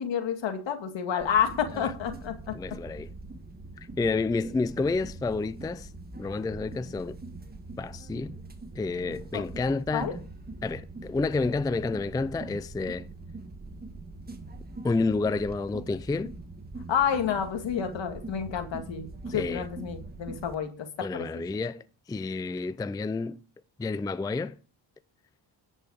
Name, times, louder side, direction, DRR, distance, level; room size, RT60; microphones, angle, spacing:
voice 1, 0.0-2.5 9.3-9.4 9.9-10.1 16.9-21.4, left 8 dB, 70° left, 2.1 m, -29 dB
sound 1, 1.2-20.5, right 2 dB, 20° right, 1.6 m, -43 dB
voice 2, 2.5-3.1 4.0-5.9 6.2-7.2 7.8-8.4 8.8-10.1 10.6-13.1 14.8-16.3 19.3-19.7 21.0-21.8 22.1-23.4 23.8-24.5, left 3 dB, 10° left, 0.4 m, -29 dB
10.5 x 5.5 x 6.3 m
cardioid pair, 80°, 45 cm